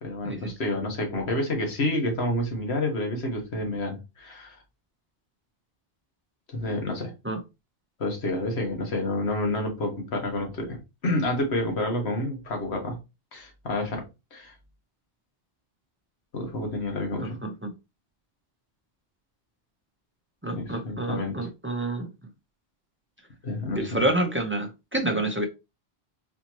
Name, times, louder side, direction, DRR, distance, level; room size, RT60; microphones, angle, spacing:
voice 1, 0.0-4.6 6.5-7.1 8.0-13.0 13.3-14.0 14.3-14.5 16.3-17.4 20.5-21.5 23.4-24.0, left 1 dB, 70° left, 1.5 m, -29 dB
voice 2, 17.2-17.7 20.4-22.1 23.7-25.5, right 1 dB, 15° right, 0.6 m, -28 dB
4.2 x 2.8 x 2.9 m
omnidirectional pair, 1.1 m